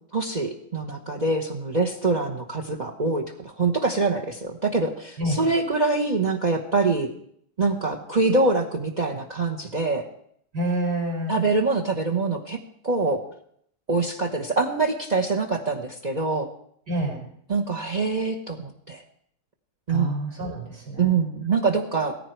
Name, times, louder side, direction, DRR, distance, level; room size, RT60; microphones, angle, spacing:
voice 1, 0.1-7.1 7.6-10.1 11.3-12.6 12.8-13.2 13.9-16.5 17.5-19.0 19.9-20.2 21.0-22.2, right 3 dB, 30° right, 5 dB, 1.1 m, -24 dB
voice 2, 5.2-5.5 10.5-11.4 16.9-17.2 19.9-21.2, right 1 dB, 80° right, -1 dB, 5.5 m, -28 dB
17.5 x 15.0 x 4.6 m, 0.67 s
omnidirectional pair, 1.7 m